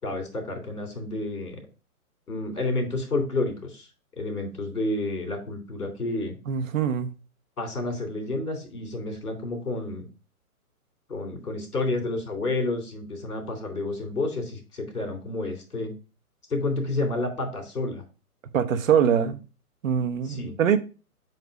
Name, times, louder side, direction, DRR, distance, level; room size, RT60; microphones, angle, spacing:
voice 1, 0.0-1.6 2.3-3.9 4.2-6.4 7.6-10.1 11.1-15.9 16.5-18.0 19.1-19.2 20.2-20.5, left 2 dB, 80° left, 3.2 m, -30 dB
voice 2, 6.5-7.1 18.5-19.4 19.8-20.8, right 8 dB, 60° right, 1.0 m, -23 dB
7.7 x 3.1 x 5.1 m
figure-of-eight pair, 130°, 45 cm